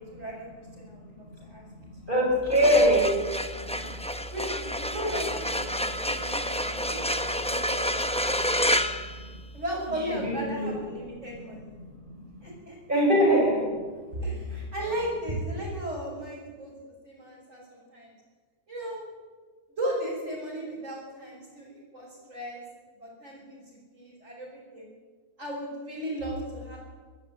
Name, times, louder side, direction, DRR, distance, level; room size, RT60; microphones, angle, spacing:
voice 1, 0.0-1.6 2.2-2.3 4.3-8.6 9.5-11.7 12.4-13.0 14.1-18.1 18.7-19.0 19.8-22.6 23.0-24.9 25.4-26.8, equal, 45° right, -6 dB, 6.7 m, -36 dB
voice 2, 2.0-3.2 9.2-9.3 10.1-10.7 12.0-12.2 12.9-13.7, equal, 25° right, -3 dB, 6.6 m, -22 dB
sound 1, 2.4-9.9, equal, 5° left, 0.6 m, -29 dB
25.0 x 13.0 x 9.4 m, 1.5 s
omnidirectional pair, 1.8 m